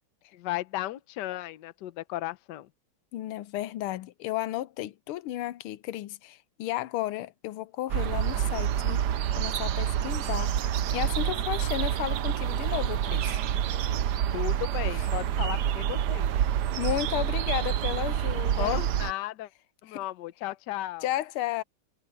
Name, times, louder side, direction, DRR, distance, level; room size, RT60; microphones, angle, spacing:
voice 1, 0.3-2.7 14.3-16.4 18.6-19.5 19.8-21.1, left 15 dB, 65° left, 1.2 m, -34 dB
voice 2, 3.1-9.1 9.3-13.4 14.9-15.0 16.8-18.8 19.9-20.0 21.0-21.6, left 14 dB, 85° left, 1.5 m, -33 dB
sound 1, 7.9-19.1, right 10 dB, 65° right, 1.1 m, -28 dB
omnidirectional pair, 2.3 m